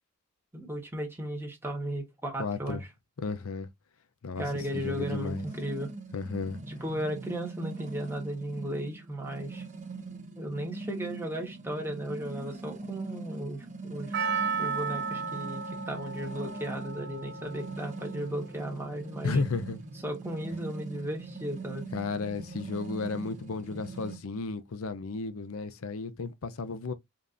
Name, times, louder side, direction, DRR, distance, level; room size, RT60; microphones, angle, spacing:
voice 1, 0.5-2.9 4.4-5.9 6.7-9.7 10.4-14.2 14.6-19.4 20.0-21.9, right 1 dB, 10° right, 1.3 m, -35 dB
voice 2, 2.4-2.8 3.2-3.7 4.2-4.5 4.7-5.4 6.1-6.6 19.2-19.8 21.9-26.9, left 4 dB, 80° left, 0.6 m, -33 dB
sound 1, 4.3-24.2, right 3 dB, 35° right, 0.9 m, -42 dB
Percussion, 14.1-18.5 18.8-18.9, right 5 dB, 55° right, 0.4 m, -34 dB
5.3 x 2.6 x 2.5 m
head